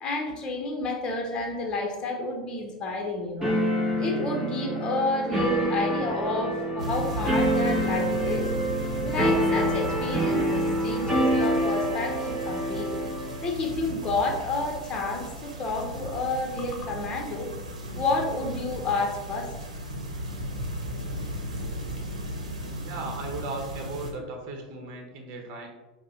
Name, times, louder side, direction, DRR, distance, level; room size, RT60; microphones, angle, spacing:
voice 1, 0.0-3.6 4.0-8.5 9.0-13.0 13.4-17.5 17.9-19.5, left 2 dB, 25° left, 1 dB, 0.9 m, -30 dB
sound 1, 3.4-13.5, equal, 10° right, 1.2 m, -27 dB
sound 2, 6.8-24.1, equal, 80° right, 0.9 m, -36 dB
voice 2, 22.8-25.7, right 3 dB, 50° right, 2 dB, 1.0 m, -36 dB
5.1 x 2.1 x 4.3 m, 1.1 s
figure-of-eight pair, 90°, 4 cm